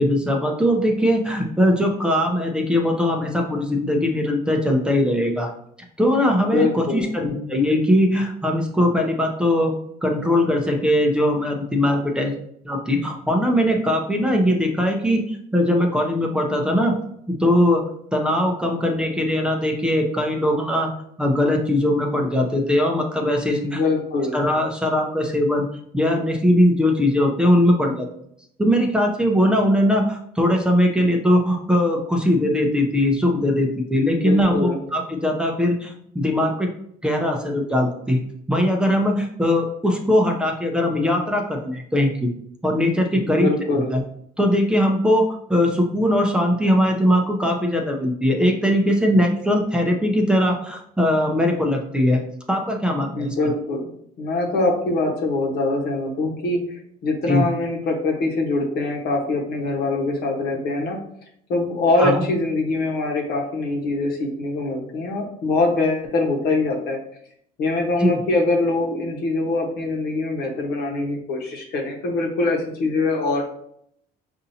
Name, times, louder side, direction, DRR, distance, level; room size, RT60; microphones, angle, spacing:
voice 1, 0.0-5.5 6.0-9.7 10.0-12.3 12.6-16.9 17.4-17.8 18.1-20.9 21.2-23.8 24.3-25.6 25.9-28.1 28.6-36.7 37.0-38.2 38.5-42.3 42.6-44.0 44.4-52.2 52.5-53.3 57.3-57.4 62.0-62.2 68.0-68.2, left 1 dB, 5° right, 1 dB, 0.6 m, -20 dB
voice 2, 6.5-7.1 23.6-24.4 34.1-34.8 43.2-43.9 53.0-53.9 54.2-61.0 61.5-67.0 67.6-73.4, left 2 dB, 70° left, 0 dB, 1.1 m, -23 dB
5.3 x 2.7 x 2.7 m, 0.69 s
cardioid pair, 110°, 17 cm